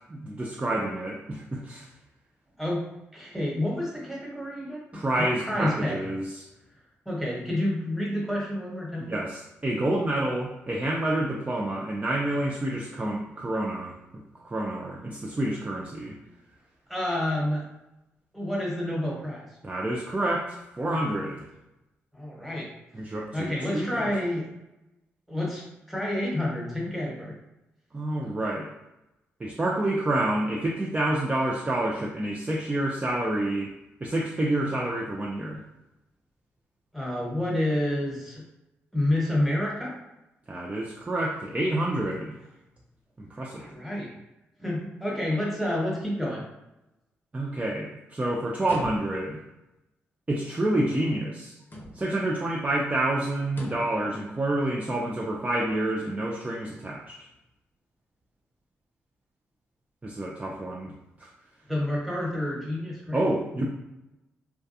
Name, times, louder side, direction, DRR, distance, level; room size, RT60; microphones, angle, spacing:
voice 1, 0.1-1.9 4.9-6.3 9.0-14.0 14.4-16.2 19.6-21.5 22.9-24.1 27.9-28.7 29.4-33.7 34.0-35.6 40.5-42.4 43.2-43.7 47.3-49.4 50.3-51.6 51.9-57.1 60.0-60.9 61.2-61.3 63.1-63.7, right 1 dB, 25° right, -2 dB, 0.4 m, -28 dB
voice 2, 3.1-6.0 7.0-9.1 16.9-17.6 18.3-19.4 22.1-22.7 23.3-24.5 25.3-25.6 25.9-27.3 36.9-38.4 38.9-39.9 43.5-44.2 44.6-46.4 61.7-63.3, left 1 dB, ahead, -4 dB, 1.2 m, -29 dB
sound 1, 48.6-49.4 51.6-52.3 53.5-54.0, left 1 dB, 35° left, 0.7 m, -40 dB
2.3 x 2.2 x 2.7 m, 0.94 s
supercardioid pair, 50°, 6 cm